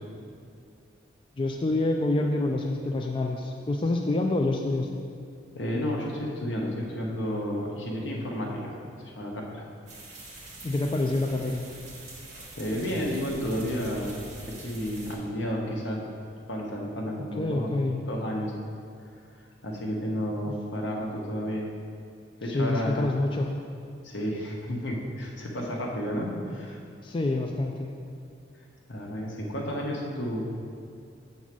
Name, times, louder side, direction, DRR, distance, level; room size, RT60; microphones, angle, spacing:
voice 1, 1.4-4.9 10.6-11.7 17.4-18.0 20.4-20.5 22.5-23.5 27.0-27.9, left 2 dB, 25° left, 1 dB, 0.3 m, -27 dB
voice 2, 5.5-9.6 12.6-14.2 14.4-16.0 16.5-17.7 18.1-18.5 19.6-21.7 22.4-23.1 24.0-26.8 28.9-30.4, equal, 75° left, -2 dB, 1.2 m, -31 dB
sound 1, 9.9-15.1, right 2 dB, 40° right, 1.7 m, -44 dB
7.3 x 4.0 x 6.1 m, 2.3 s
head